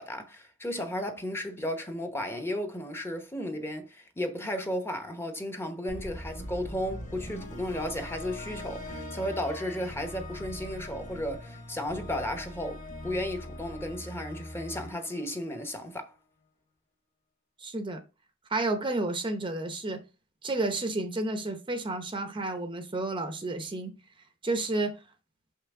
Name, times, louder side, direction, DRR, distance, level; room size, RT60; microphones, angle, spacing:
voice 1, 0.0-16.1, left 1 dB, 10° left, 0.9 m, -34 dB
sound 1, 5.9-16.1, left 1 dB, 40° left, 1.8 m, -42 dB
voice 2, 17.6-18.0 18.5-20.0 20.4-23.9 24.4-25.0, right 2 dB, 25° right, 0.7 m, -31 dB
6.2 x 5.7 x 3.6 m
head